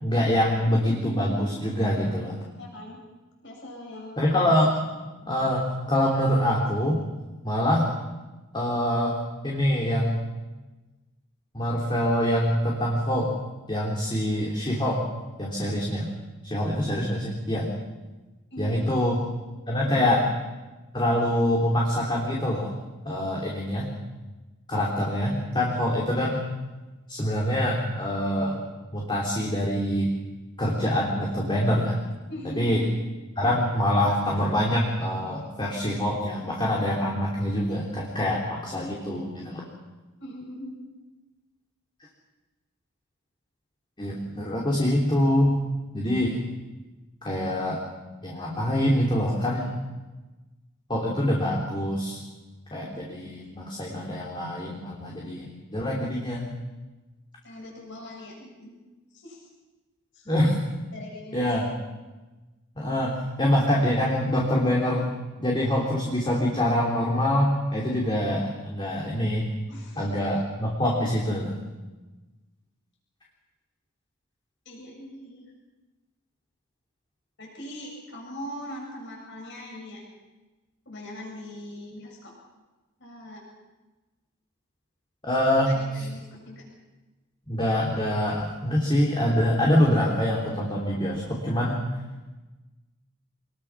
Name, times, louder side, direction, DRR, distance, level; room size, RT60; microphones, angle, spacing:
voice 1, 0.0-2.4 4.2-4.8 5.3-7.0 7.4-7.9 8.5-9.2 9.4-10.2 11.5-13.3 13.7-15.0 15.4-16.1 16.4-17.7 18.6-19.2 19.7-20.2 20.9-22.7 23.0-23.9 24.7-26.4 27.1-28.6 28.9-30.1 30.6-32.0 32.6-32.8 33.4-39.6 44.0-45.6 45.9-46.4 47.2-47.8 48.2-49.7 50.9-52.2 52.7-56.5 60.3-60.6 61.3-61.7 62.8-65.1 65.4-69.5 70.0-71.5 85.2-86.1 87.5-91.8, equal, 20° left, -3 dB, 3.1 m, -25 dB
voice 2, 2.6-3.0 3.4-4.3 18.5-19.2 19.7-20.2 32.3-32.8 40.2-40.7 57.4-58.8 59.1-59.5 60.1-60.3 60.9-61.5 69.7-70.0 74.7-75.4 77.4-80.0 80.9-82.3 83.0-83.4 85.7-86.6, equal, 55° left, -2 dB, 7.4 m, -40 dB
26.0 x 21.0 x 6.1 m, 1.2 s
head